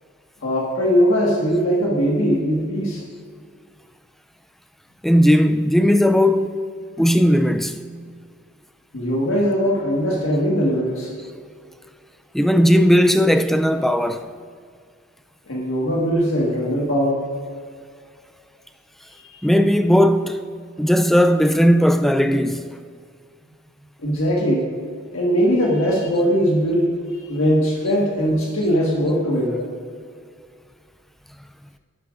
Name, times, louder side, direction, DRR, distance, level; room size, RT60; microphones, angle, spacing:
voice 1, 0.4-3.0 8.9-11.1 15.5-17.2 24.0-24.7 25.1-26.9 27.3-29.6, equal, 75° left, 1.6 m, -20 dB
voice 2, 5.0-6.6 7.0-7.8 12.3-14.3 19.4-20.4 20.8-22.7, equal, ahead, 0.3 m, -17 dB
12.0 x 12.0 x 2.5 m
head